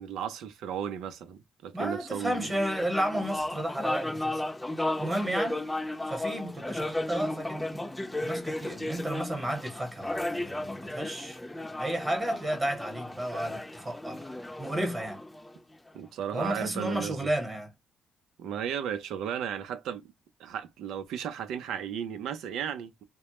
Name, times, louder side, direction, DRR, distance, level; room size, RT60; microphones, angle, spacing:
voice 1, 0.0-2.4 15.9-17.3 18.4-20.1 20.4-23.0, right 9 dB, 85° right, 0.5 m, -35 dB
voice 2, 1.7-4.4 5.0-5.6 6.1-7.6 8.2-11.4 11.8-14.3 14.6-15.2 16.3-17.7, right 1 dB, 25° right, 1.0 m, -32 dB
sound 1, 2.2-15.9, left 1 dB, 10° left, 0.6 m, -35 dB
2.1 x 2.0 x 2.8 m
cardioid pair, 90°, 0 cm